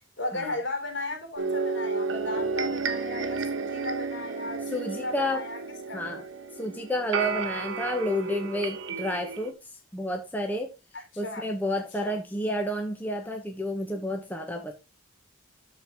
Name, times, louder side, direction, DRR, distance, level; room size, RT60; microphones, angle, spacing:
voice 1, 0.2-5.6 5.9-6.0 10.9-11.5 12.0-12.2, left 2 dB, 60° left, 3.6 m, -36 dB
sound 1, 1.4-9.5, right 4 dB, 65° right, 1.3 m, -32 dB
voice 2, 4.7-5.4 5.9-6.2 6.6-9.6 9.9-10.7 11.2-14.7, left 1 dB, 10° left, 1.1 m, -30 dB
13.0 x 4.6 x 3.5 m
head